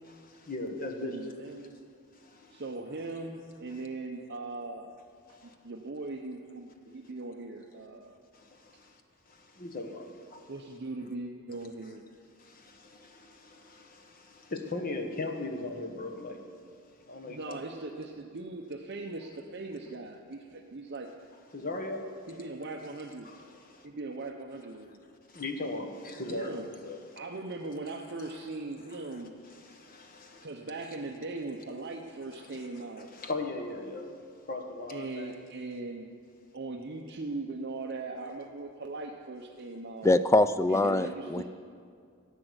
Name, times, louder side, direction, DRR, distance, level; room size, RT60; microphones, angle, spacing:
voice 1, 0.2-1.3 2.1-2.6 5.3-5.5 8.3-9.0 9.3-10.5 12.4-16.5 17.0-17.6 21.5-22.4 23.2-23.9 25.3-27.2 27.9-28.3 28.9-30.5 30.8-30.9 32.4-32.7 33.1-34.2 34.5-35.3, left 2 dB, 40° left, 4 dB, 1.3 m, -39 dB
voice 2, 1.0-1.7 2.5-4.9 5.3-5.4 5.6-8.2 10.5-12.1 17.3-21.1 22.3-23.3 23.8-24.9 26.3-26.7 27.2-29.3 30.4-33.1 34.9-36.1 36.5-40.1 40.7-41.4, right 3 dB, 50° right, 2 dB, 0.8 m, -39 dB
voice 3, 40.0-41.4, left 2 dB, 15° left, 13 dB, 0.3 m, -24 dB
15.5 x 8.9 x 8.0 m, 2.3 s
head